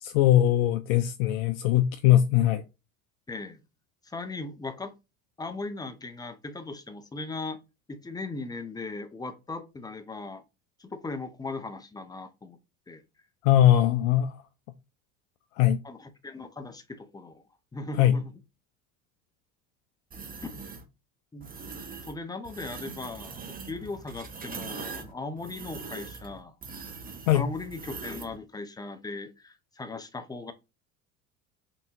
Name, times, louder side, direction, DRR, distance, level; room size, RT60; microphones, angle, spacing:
voice 1, 0.0-2.6 13.4-14.3 15.6-15.8 18.0-18.2 27.3-27.4, left 12 dB, 65° left, 0.5 m, -21 dB
voice 2, 3.3-3.6 4.0-4.9 5.4-7.6 7.9-10.4 10.8-12.6 12.9-13.0 15.8-17.4 17.7-18.3 20.4-20.6 21.3-21.5 22.0-26.6 27.3-30.5, left 3 dB, 10° left, 0.4 m, -38 dB
sound 1, 20.1-20.8 21.4-22.1 22.4-28.4, right 4 dB, 20° right, 0.8 m, -41 dB
3.5 x 2.6 x 2.8 m
hypercardioid pair, 70°, 42 cm